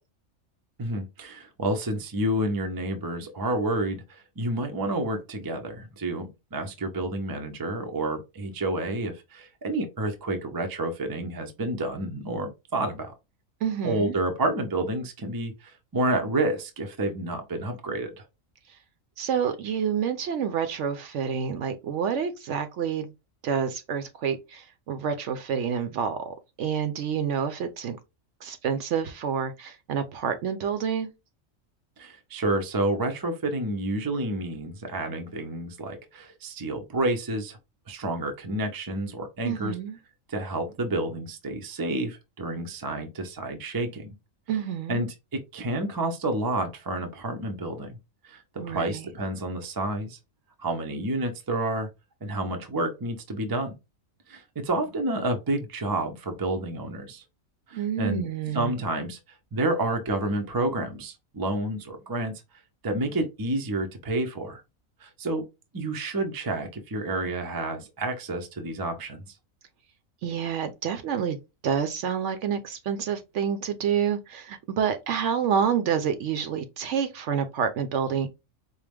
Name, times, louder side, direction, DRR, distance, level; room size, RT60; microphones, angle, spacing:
voice 1, 0.8-13.1 13.8-18.1 32.0-37.6 37.9-39.7 40.3-44.1 44.9-48.0 48.2-50.2 50.6-51.9 52.2-53.7 54.3-57.2 57.7-59.2 59.5-62.3 62.8-64.6 65.0-65.5 65.7-69.2, right 2 dB, 30° right, 0.4 m, -29 dB
voice 2, 13.6-14.1 19.2-23.1 23.4-28.0 28.4-31.1 39.4-40.0 44.5-45.1 48.6-49.1 57.7-58.7 70.2-71.4 71.6-78.3, right 7 dB, 65° right, 0.9 m, -28 dB
4.6 x 2.1 x 3.4 m
omnidirectional pair, 1.4 m